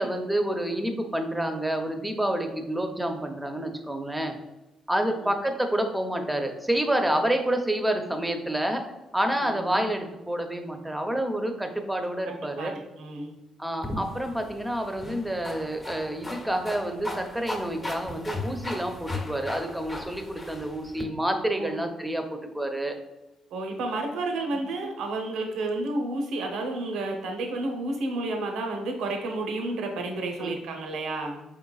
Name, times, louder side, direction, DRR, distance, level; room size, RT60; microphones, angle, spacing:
voice 1, 0.0-4.3 4.9-8.8 9.1-12.7 13.6-23.0 30.4-30.6, right 1 dB, 5° right, 5 dB, 0.7 m, -28 dB
voice 2, 9.5-9.8 12.6-13.3 21.6-21.7 23.5-31.4, right 2 dB, 85° right, 3 dB, 0.7 m, -31 dB
sound 1, 13.8-21.0, left 2 dB, 25° left, 0.9 m, -37 dB
4.5 x 3.7 x 2.4 m, 1.0 s
cardioid pair, 90°, 0 cm